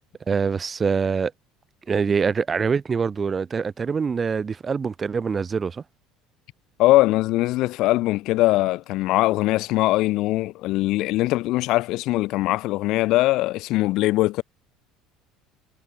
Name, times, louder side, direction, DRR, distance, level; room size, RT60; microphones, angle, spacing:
voice 1, 0.3-1.3 1.9-5.8, right 5 dB, 30° right, 2.1 m, -24 dB
voice 2, 6.8-14.4, left 18 dB, 65° left, 3.5 m, -21 dB
supercardioid pair, 90°, 0 cm